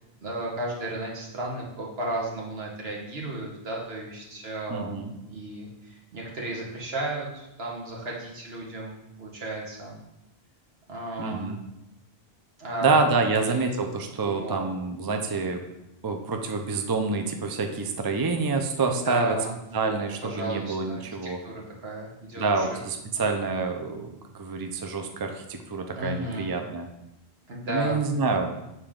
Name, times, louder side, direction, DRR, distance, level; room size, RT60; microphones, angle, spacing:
voice 1, 0.2-10.0 10.9-11.5 12.6-13.0 13.3-13.6 14.2-14.6 18.8-22.8 25.9-26.5 27.5-28.0, right 2 dB, 70° right, -2 dB, 1.6 m, -34 dB
voice 2, 4.7-5.1 11.2-11.6 12.8-15.6 16.0-19.3 19.7-21.4 22.4-26.9 27.7-28.5, right 4 dB, 30° right, 5 dB, 0.4 m, -27 dB
6.8 x 4.3 x 3.7 m, 0.89 s
omnidirectional pair, 1.1 m